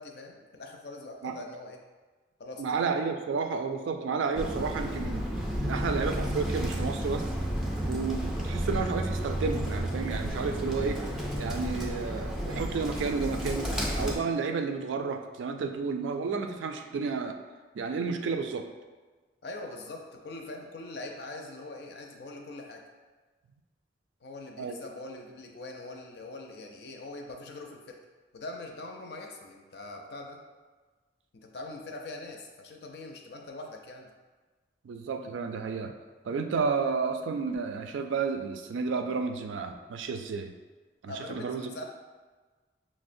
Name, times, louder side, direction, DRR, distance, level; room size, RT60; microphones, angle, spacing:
voice 1, 0.0-1.8 2.4-2.8 19.4-22.8 24.2-28.0 28.3-30.4 31.3-34.1 41.1-41.8, left 2 dB, 55° left, 2 dB, 0.5 m, -42 dB
voice 2, 2.6-5.2 5.6-7.3 7.9-11.0 11.4-13.7 14.0-17.4 17.7-18.7 24.6-24.8 34.8-35.9 36.2-40.5 41.0-41.7, right 5 dB, 80° right, 6 dB, 0.3 m, -31 dB
Bird, 4.3-14.2, equal, 5° right, 0.3 m, -32 dB
6.0 x 2.0 x 2.5 m, 1.3 s
head